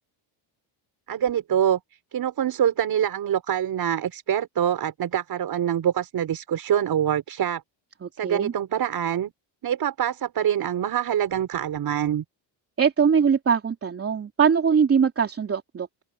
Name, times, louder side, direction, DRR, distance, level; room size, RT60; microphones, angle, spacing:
voice 1, 1.1-1.8 2.1-7.6 8.2-9.3 9.6-12.2, right 9 dB, 50° right, 4.5 m, -25 dB
voice 2, 8.0-8.5 12.8-16.0, right 6 dB, 30° right, 3.1 m, -22 dB
cardioid pair, 135°, 46 cm